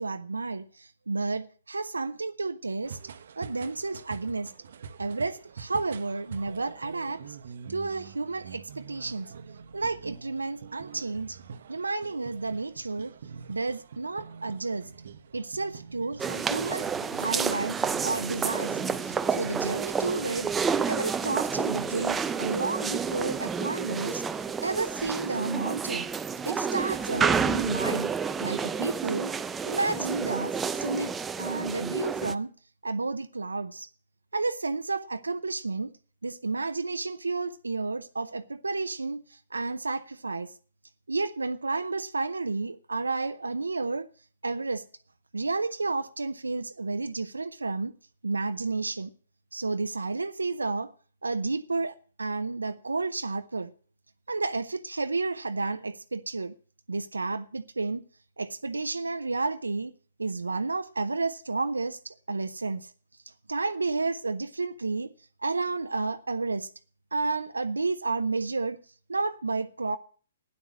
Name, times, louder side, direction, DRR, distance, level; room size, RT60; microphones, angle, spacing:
voice 1, 0.0-3.0 3.4-4.5 5.0-7.2 7.7-9.3 9.7-11.4 11.7-13.1 13.5-14.9 15.3-20.5 20.8-24.3 24.6-26.1 26.4-28.1 28.4-29.3 29.6-31.1 31.4-32.5 32.8-33.9 34.3-35.9 36.2-40.5 41.1-44.1 44.4-44.8 45.3-47.9 48.2-49.1 49.5-50.9 51.2-53.7 54.3-56.5 56.9-58.0 58.4-59.9 60.2-62.9 63.5-65.1 65.4-66.7 67.1-68.8 69.1-70.0, right 3 dB, 85° right, 0.7 m, -31 dB
sound 1, 2.8-21.9, right 6 dB, 60° right, 1.0 m, -45 dB
sound 2, 16.2-32.3, right 6 dB, 10° right, 0.5 m, -30 dB
12.5 x 9.9 x 6.3 m
figure-of-eight pair, 130°, 0 cm